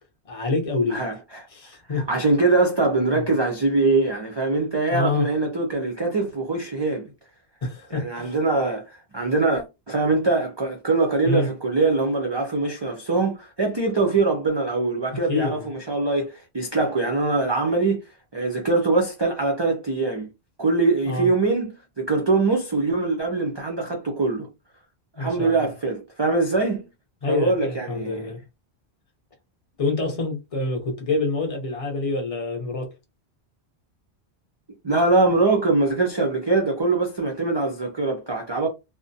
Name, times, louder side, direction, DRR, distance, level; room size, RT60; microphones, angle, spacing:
voice 1, 0.3-1.0 1.5-2.3 3.1-3.2 4.9-5.3 7.6-8.4 11.2-11.5 15.3-15.7 21.0-21.3 25.2-25.7 27.2-28.4 29.8-32.9, left 3 dB, 35° left, 0.7 m, -26 dB
voice 2, 0.9-1.5 1.9-7.1 7.9-18.0 18.3-20.3 20.6-24.5 25.2-26.8 27.3-28.3 34.8-38.7, right 3 dB, 45° right, 0.3 m, -23 dB
2.5 x 2.1 x 2.6 m
omnidirectional pair, 1.1 m